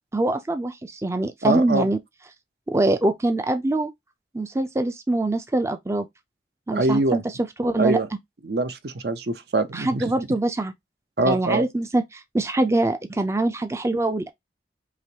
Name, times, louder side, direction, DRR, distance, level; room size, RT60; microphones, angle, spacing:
voice 1, 0.1-2.0 2.7-3.9 4.3-6.1 6.7-7.2 7.6-8.0 9.7-10.7 11.2-14.3, right 2 dB, 15° right, 0.4 m, -23 dB
voice 2, 1.4-1.9 6.7-7.2 7.8-8.1 8.4-10.1 11.2-11.7, right 2 dB, 65° right, 0.6 m, -23 dB
4.9 x 3.0 x 2.8 m
head